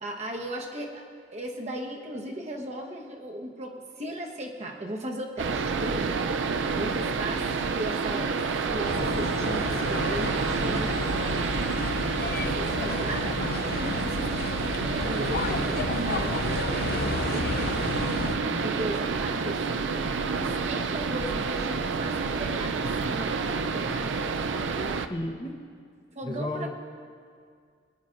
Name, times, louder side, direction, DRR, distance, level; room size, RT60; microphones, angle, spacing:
voice 1, 0.0-1.0 1.3-6.2 6.7-8.4 8.7-11.5 12.4-13.4 13.7-17.6 18.3-19.6 20.3-24.2 24.6-25.0 26.1-26.7, right 1 dB, 35° right, 1 dB, 1.1 m, -37 dB
sound 1, 5.4-25.1, right 4 dB, 70° right, 0.5 m, -29 dB
sound 2, 8.8-18.4, left 4 dB, 55° left, 0.5 m, -33 dB
voice 2, 25.1-25.5 26.2-26.7, left 1 dB, 25° left, 2 dB, 0.9 m, -32 dB
23.5 x 10.0 x 2.5 m, 2.1 s
head